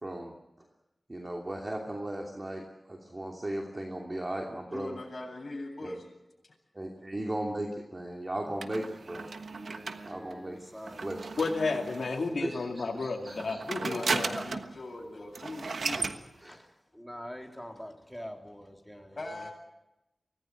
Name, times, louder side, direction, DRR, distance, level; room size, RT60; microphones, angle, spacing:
voice 1, 0.0-0.4 1.1-5.0 5.8-6.0 6.7-9.3 10.0-10.6 10.9-11.3 12.4-13.6 16.4-16.6, right 1 dB, 30° right, 1 dB, 2.8 m, -37 dB
voice 2, 4.7-6.1 6.4-6.6 13.7-16.1 19.1-19.5, left 2 dB, 45° left, 2 dB, 8.0 m, -41 dB
sound 1, 8.6-12.3 13.2-14.8 15.0-15.1 15.3-16.2, right 4 dB, 85° right, 1.3 m, -35 dB
voice 3, 9.5-11.1 14.1-14.6 16.0-16.1 16.5-16.7 16.9-19.5, equal, 5° left, 2 dB, 3.5 m, -45 dB
voice 4, 11.4-14.4, left 3 dB, 80° left, 0 dB, 2.9 m, -32 dB
24.5 x 18.5 x 8.0 m, 0.94 s
wide cardioid pair, 65°, 0 cm